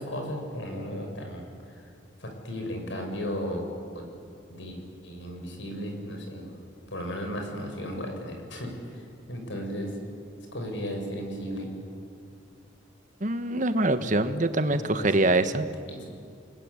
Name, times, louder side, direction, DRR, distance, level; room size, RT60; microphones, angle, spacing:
voice 1, 0.0-1.5 2.2-3.6 3.9-4.0 4.5-4.8 5.0-6.6 6.9-9.0 9.3-9.9 10.5-11.7 14.7-15.6 15.9-16.1, equal, 85° left, 3 dB, 6.7 m, -35 dB
voice 2, 13.2-15.6, right 2 dB, 45° right, 10 dB, 1.4 m, -24 dB
29.5 x 20.5 x 9.8 m, 2.4 s
head